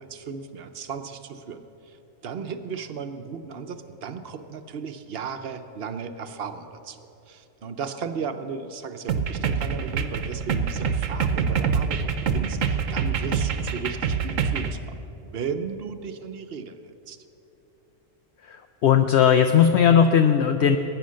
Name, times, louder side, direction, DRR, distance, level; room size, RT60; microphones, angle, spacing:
voice 1, 0.0-2.0 2.2-15.0 15.2-17.2, right 5 dB, 55° right, 9 dB, 1.0 m, -35 dB
sound 1, 9.1-14.7, right 6 dB, 90° right, 1.2 m, -25 dB
voice 2, 18.5-20.8, left 8 dB, 65° left, 7 dB, 0.9 m, -18 dB
20.5 x 9.3 x 6.4 m, 3.0 s
omnidirectional pair, 1.3 m